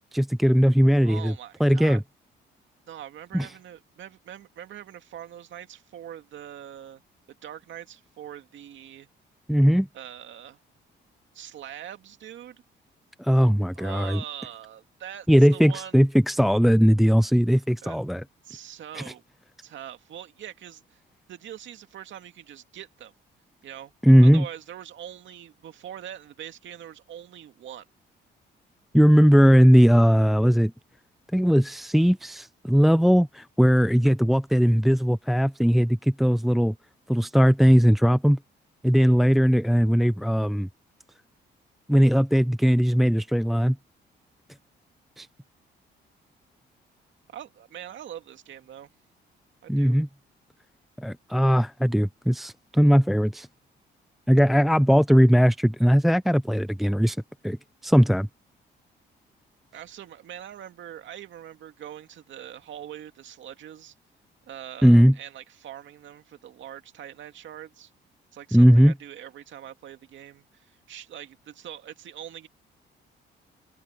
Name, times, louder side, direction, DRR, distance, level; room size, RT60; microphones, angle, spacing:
voice 1, 0.1-1.3 1.6-2.0 3.3-3.5 9.5-9.9 13.2-14.2 15.3-18.2 19.0-19.1 24.0-24.5 28.9-30.7 31.3-36.7 37.1-38.4 38.8-40.7 41.9-43.8 45.2-45.3 49.7-50.1 51.0-53.5 54.3-57.2 57.4-57.6 57.8-58.3 64.8-65.1 68.5-68.9, equal, ahead, 0.4 m, -19 dB
voice 2, 1.0-2.0 2.9-7.0 7.4-9.1 9.9-10.6 11.3-12.6 13.7-16.1 17.8-18.0 18.4-19.2 19.6-21.0 21.3-23.1 23.6-23.9 24.2-27.9 47.3-48.9 49.6-50.0 59.7-63.9 64.4-67.9 68.3-72.5, right 10 dB, 70° right, 2.3 m, -42 dB
open air
cardioid pair, 90°, 20 cm